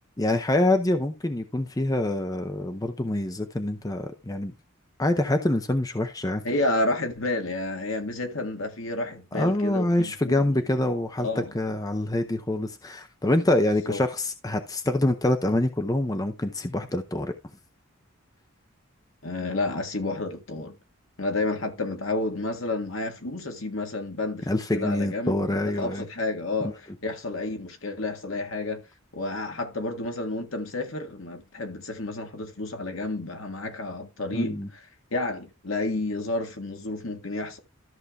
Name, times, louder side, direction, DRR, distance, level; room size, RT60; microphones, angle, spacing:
voice 1, 0.2-4.5 5.0-6.4 9.3-11.3 11.5-17.3 24.5-26.0 26.6-26.7 34.3-34.7, left 1 dB, 15° left, 0.6 m, -25 dB
voice 2, 6.4-10.6 11.2-11.5 13.9-14.0 19.2-20.8 21.2-28.8 29.1-34.7 35.1-37.6, left 2 dB, 70° left, 1.7 m, -30 dB
13.5 x 6.7 x 2.4 m
head